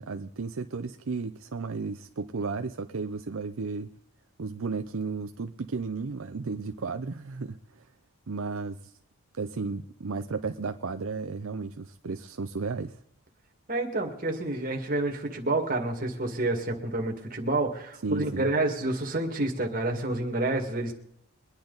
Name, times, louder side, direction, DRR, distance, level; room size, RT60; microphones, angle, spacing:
voice 1, 0.0-3.9 4.4-7.9 8.3-9.0 9.3-13.0 18.0-18.5, right 4 dB, 65° right, 0.6 m, -34 dB
voice 2, 13.7-20.9, right 2 dB, 40° right, 2.0 m, -29 dB
23.0 x 10.5 x 4.0 m
head